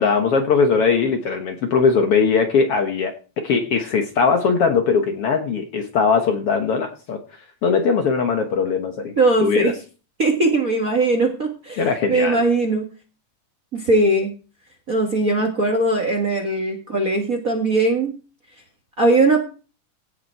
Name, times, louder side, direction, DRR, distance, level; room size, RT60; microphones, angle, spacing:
voice 1, 0.0-7.2 7.6-9.1 9.4-9.7 11.8-12.4, left 5 dB, 60° left, 1.7 m, -20 dB
voice 2, 9.2-9.7 10.2-11.8 12.1-12.9 13.7-14.3 14.9-18.1 19.0-19.4, right 2 dB, 40° right, 1.3 m, -19 dB
16.5 x 6.8 x 4.5 m
omnidirectional pair, 3.6 m